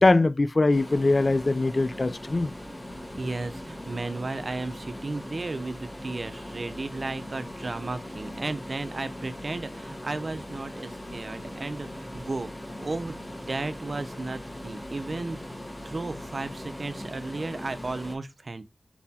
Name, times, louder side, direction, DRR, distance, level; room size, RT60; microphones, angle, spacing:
voice 1, 0.0-2.5, left 2 dB, 45° left, 0.3 m, -22 dB
sound 1, 0.7-18.2, left 1 dB, 15° left, 1.1 m, -40 dB
voice 2, 3.2-12.5 12.8-15.4 15.8-18.7, right 3 dB, 55° right, 0.5 m, -34 dB
4.2 x 4.2 x 2.7 m
wide cardioid pair, 90°, 0 cm